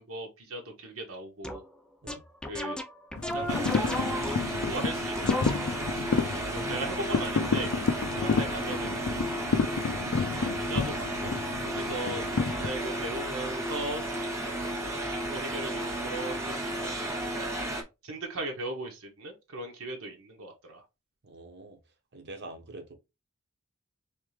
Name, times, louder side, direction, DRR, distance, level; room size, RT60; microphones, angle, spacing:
voice 1, 0.0-1.6 2.5-2.8 3.3-5.5 6.4-7.8 8.2-9.2 10.6-11.4 11.6-14.0 14.8-17.7 18.0-20.8, right 2 dB, 80° right, 1.1 m, -38 dB
sound 1, 1.4-1.7 2.1-4.7 5.1-5.9, left 1 dB, 5° left, 0.4 m, -34 dB
sound 2, 3.2-12.7, left 5 dB, 80° left, 0.5 m, -31 dB
sound 3, 3.5-17.8, right 1 dB, 15° right, 0.9 m, -33 dB
voice 2, 6.1-6.8 11.7-11.9 21.2-21.8 22.1-22.9, right 2 dB, 55° right, 0.9 m, -45 dB
3.6 x 3.3 x 3.2 m
head